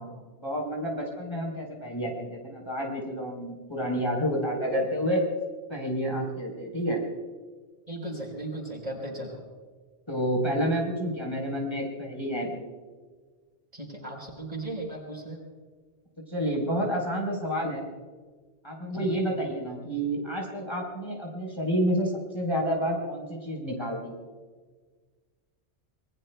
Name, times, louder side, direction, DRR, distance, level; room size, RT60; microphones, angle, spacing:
voice 1, 0.0-5.2 5.7-7.0 10.1-12.6 16.3-17.8 18.6-24.2, equal, 25° left, -2 dB, 4.0 m, -29 dB
voice 2, 7.9-9.4 13.7-15.4 18.9-19.1, right 1 dB, 35° right, -1 dB, 4.5 m, -36 dB
26.5 x 22.0 x 2.3 m, 1.5 s
omnidirectional pair, 1.2 m